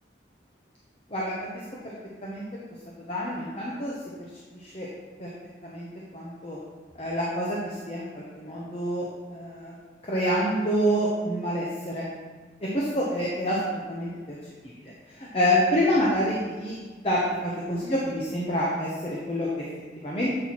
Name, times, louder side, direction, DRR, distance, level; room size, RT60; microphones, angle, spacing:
voice 1, 3.1-3.9 4.6-4.9 5.2-5.3 5.6-5.9 6.1-6.6 7.0-9.7 10.1-12.1 12.6-14.4 15.3-16.8 17.0-19.5 20.0-20.3, equal, 30° left, -5 dB, 0.9 m, -27 dB
7.7 x 4.5 x 4.3 m, 1.4 s
head